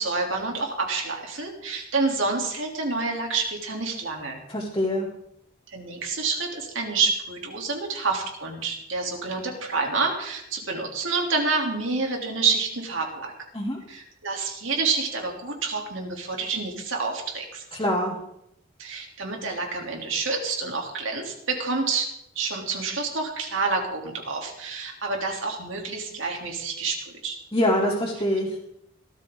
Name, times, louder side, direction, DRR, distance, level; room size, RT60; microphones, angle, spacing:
voice 1, 0.0-4.4 5.7-13.3 13.9-17.6 18.8-22.1 22.4-27.4, right 4 dB, 65° right, 1 dB, 3.6 m, -28 dB
voice 2, 4.5-5.1 13.5-13.8 17.7-18.1 27.5-28.5, left 1 dB, 20° left, -8 dB, 3.4 m, -24 dB
18.5 x 13.5 x 4.0 m, 0.76 s
head